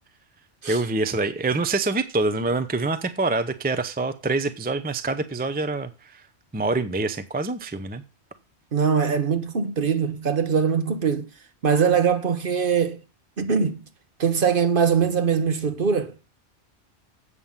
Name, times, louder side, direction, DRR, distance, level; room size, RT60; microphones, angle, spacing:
voice 1, 0.7-6.2 6.5-8.0, right 3 dB, 10° right, 0.5 m, -25 dB
voice 2, 8.7-11.3 11.6-13.0 13.4-13.8 14.2-16.1, right 6 dB, 50° right, 1.1 m, -22 dB
8.2 x 5.6 x 7.3 m
omnidirectional pair, 1.2 m